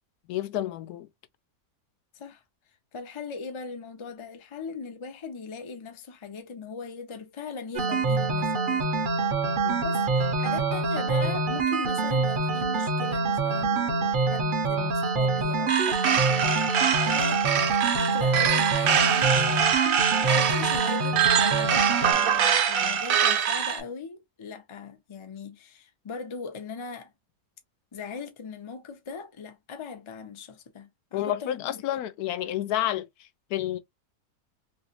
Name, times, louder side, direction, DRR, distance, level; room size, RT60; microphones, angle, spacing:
voice 1, 0.3-1.1 9.6-9.9 22.8-23.0 31.1-33.8, left 13 dB, 85° left, 1.1 m, -30 dB
voice 2, 2.9-8.9 9.8-19.7 20.2-27.1 27.9-31.8, left 5 dB, 35° left, 0.5 m, -39 dB
sound 1, 7.8-22.1, right 4 dB, 45° right, 0.7 m, -26 dB
sound 2, 15.7-23.8, right 8 dB, 70° right, 1.1 m, -24 dB
3.1 x 2.9 x 2.8 m
omnidirectional pair, 1.6 m